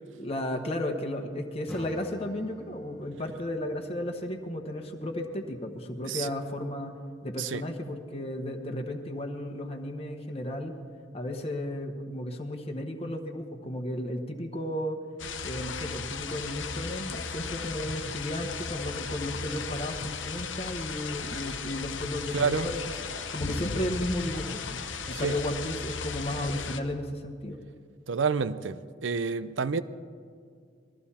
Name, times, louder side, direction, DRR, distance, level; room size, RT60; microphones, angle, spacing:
voice 1, 0.2-7.0 7.2-10.7 11.1-15.0 15.4-24.8 25.1-27.6, left 1 dB, 30° left, 3 dB, 1.1 m, -34 dB
Acoustic guitar / Strum, 1.7-6.9, equal, 5° left, 0.8 m, -49 dB
sound 1, 15.2-26.8, left 5 dB, 80° left, 0.9 m, -36 dB
sound 2, 19.3-19.4 20.0-20.1 20.7-20.8 21.3-21.4 22.0-22.1 22.7-22.8 23.3-23.4 24.0-24.1 24.7-24.8 25.3-25.5 26.0-26.1 26.7-26.8, left 5 dB, 60° left, 0.5 m, -45 dB
voice 2, 22.3-22.7 25.1-25.3 28.1-29.8, right 5 dB, 80° right, 15 dB, 0.6 m, -29 dB
20.0 x 14.5 x 4.3 m, 2.2 s
head